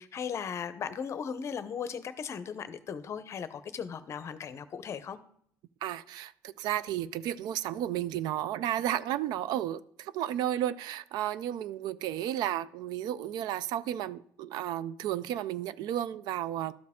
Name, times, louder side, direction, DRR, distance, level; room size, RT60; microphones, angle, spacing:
voice 1, 0.0-5.2, left 7 dB, 40° left, 13 dB, 0.6 m, -37 dB
voice 2, 5.8-16.7, right 12 dB, 65° right, 18 dB, 0.3 m, -33 dB
12.5 x 4.7 x 3.6 m, 0.67 s
cardioid pair, 120°, 7 cm